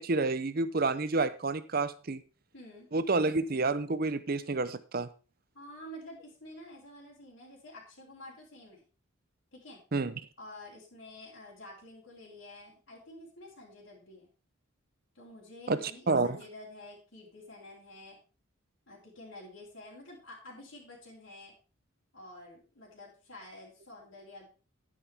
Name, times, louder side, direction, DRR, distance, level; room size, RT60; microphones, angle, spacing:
voice 1, 0.0-2.2 2.9-5.1 9.9-10.1 15.7-15.8 16.1-16.3, right 3 dB, 45° right, 14 dB, 0.7 m, -29 dB
voice 2, 2.5-2.9 5.5-8.8 9.5-9.8 10.4-14.3 15.1-18.2 18.9-21.5 22.1-24.5, left 1 dB, 65° left, -5 dB, 4.2 m, -49 dB
10.0 x 10.0 x 3.6 m, 0.33 s
head